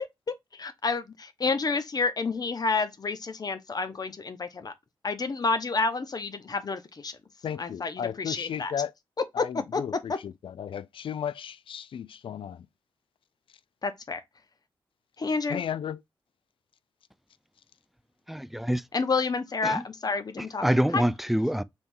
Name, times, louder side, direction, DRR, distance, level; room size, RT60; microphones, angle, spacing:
voice 1, 0.5-4.7 5.0-7.2 7.6-8.7 9.4-9.8 10.1-10.2 13.8-14.2 15.2-15.6 18.9-20.6 20.9-21.0, left 4 dB, 45° left, 0.8 m, -29 dB
voice 2, 7.4-8.9 9.3-12.7 15.5-16.0, left 8 dB, 70° left, 0.4 m, -34 dB
voice 3, 18.3-18.8 19.6-19.8 20.4-21.6, equal, ahead, 0.4 m, -26 dB
4.4 x 3.5 x 2.6 m
cardioid pair, 65°, 9 cm